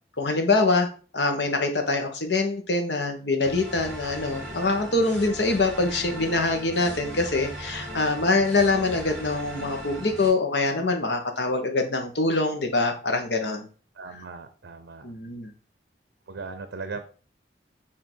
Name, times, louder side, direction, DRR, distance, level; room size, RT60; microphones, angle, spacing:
voice 1, 0.2-0.9 1.1-13.7 15.0-15.5, left 3 dB, 80° left, 5 dB, 1.2 m, -24 dB
sound 1, 3.4-10.3, equal, 5° right, 3.2 m, -38 dB
voice 2, 14.0-15.1 16.3-17.0, right 4 dB, 85° right, 9 dB, 0.6 m, -38 dB
7.7 x 2.8 x 4.5 m, 0.38 s
head